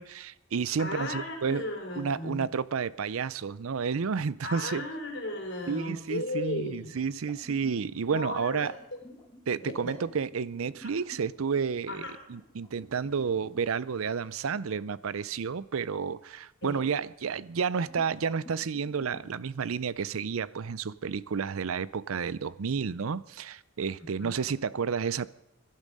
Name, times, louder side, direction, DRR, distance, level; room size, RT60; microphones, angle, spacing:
voice 1, 0.0-1.6 2.0-4.8 5.7-8.7 9.5-25.3, right 6 dB, 70° right, 0.5 m, -31 dB
voice 2, 0.8-2.5 4.4-6.9 8.1-9.0 9.6-9.9 10.8-11.0 11.9-12.2 16.6-16.9 24.2-24.4, left 1 dB, 50° left, 3.7 m, -36 dB
sound 1, 7.0-13.7 17.0-17.1 17.9-19.4, equal, 20° left, 1.8 m, -52 dB
22.0 x 12.0 x 5.3 m
head